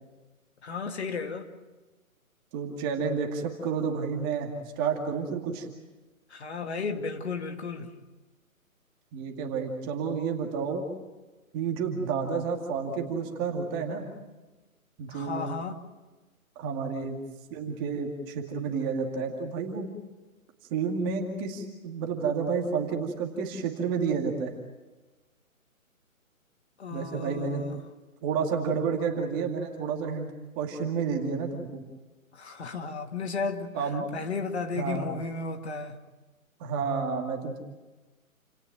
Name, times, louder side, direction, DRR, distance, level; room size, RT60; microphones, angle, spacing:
voice 1, 0.6-1.5 6.3-7.9 15.1-15.8 26.8-27.8 32.3-33.9 34.1-36.0, left 4 dB, 50° left, 2.4 m, -34 dB
voice 2, 2.5-5.7 9.1-10.8 11.5-14.0 15.0-15.4 16.6-17.2 17.5-19.9 20.7-24.5 26.9-27.6 28.2-30.3 30.6-31.8 33.7-34.1 34.7-35.1 36.6-37.6, right 5 dB, 15° right, 2.3 m, -30 dB
29.5 x 17.5 x 9.3 m
hypercardioid pair, 160°, 42 cm